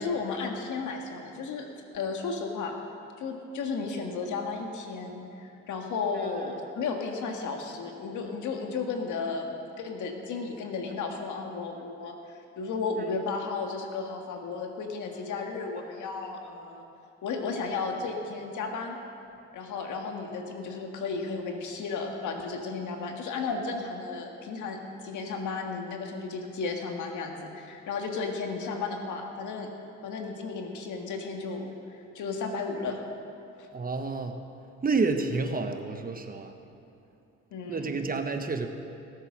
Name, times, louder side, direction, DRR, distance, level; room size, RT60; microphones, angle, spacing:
voice 1, 0.0-1.7 1.9-2.7 3.2-16.8 17.2-19.0 19.5-24.8 25.0-29.7 30.0-33.0 33.6-33.7 37.5-37.9, left 4 dB, 75° left, 2 dB, 1.8 m, -34 dB
voice 2, 33.7-34.4 34.8-36.5 37.7-38.7, right 4 dB, 30° right, 6 dB, 1.1 m, -29 dB
18.0 x 8.1 x 6.4 m, 2.8 s
cardioid pair, 90°, 30 cm